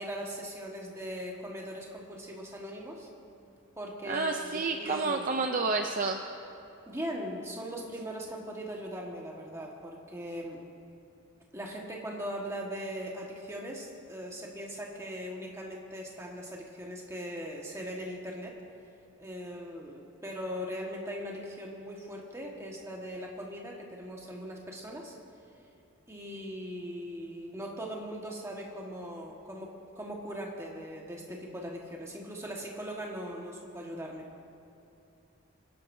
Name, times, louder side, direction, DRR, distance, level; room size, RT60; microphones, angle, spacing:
voice 1, 0.0-3.1 3.7-4.5 4.8-5.3 6.9-10.6 11.5-18.5 19.2-25.1 26.1-34.3, equal, 15° right, -2 dB, 1.6 m, -40 dB
voice 2, 4.0-6.3, right 3 dB, 40° right, 3 dB, 0.6 m, -30 dB
26.5 x 11.0 x 2.7 m, 2.9 s
head